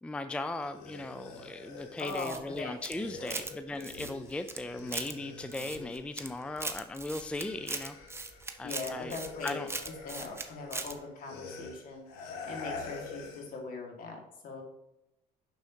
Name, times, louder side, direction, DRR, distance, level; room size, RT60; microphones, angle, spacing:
voice 1, 0.0-8.0 8.6-9.2 9.4-9.7, left 2 dB, 5° left, 10 dB, 0.4 m, -38 dB
sound 1, 0.6-6.8 7.1-13.6, left 3 dB, 80° left, 1.4 m, -46 dB
voice 2, 2.0-3.4 8.6-9.7 10.0-14.6, left 3 dB, 55° left, 2 dB, 1.9 m, -41 dB
sound 2, 2.0-3.5 3.8-5.1 5.5-6.3 6.6-10.4 10.7-10.9, right 3 dB, 15° right, 0.8 m, -39 dB
6.4 x 6.2 x 2.8 m, 0.87 s
supercardioid pair, 80°, 17 cm